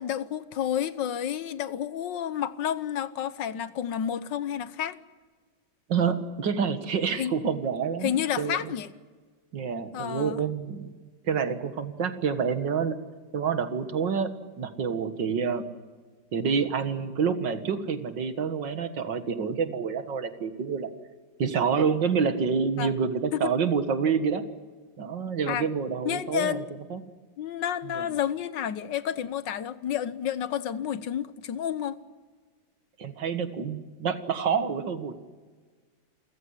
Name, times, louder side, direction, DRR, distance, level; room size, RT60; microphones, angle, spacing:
voice 1, 0.0-5.0 7.2-7.3 8.0-8.9 9.9-10.4 22.8-22.9 23.3-23.5 25.5-25.7 26.1-26.7 27.4-32.0, left 9 dB, 75° left, 15 dB, 1.6 m, -30 dB
voice 2, 5.9-8.7 9.5-10.9 11.2-13.0 13.3-14.3 14.6-15.7 16.3-20.9 21.4-24.4 25.0-26.6 26.9-27.0 27.9-28.1 33.0-35.2, right 6 dB, 75° right, 9 dB, 2.3 m, -28 dB
29.0 x 15.5 x 9.9 m, 1.4 s
omnidirectional pair, 2.0 m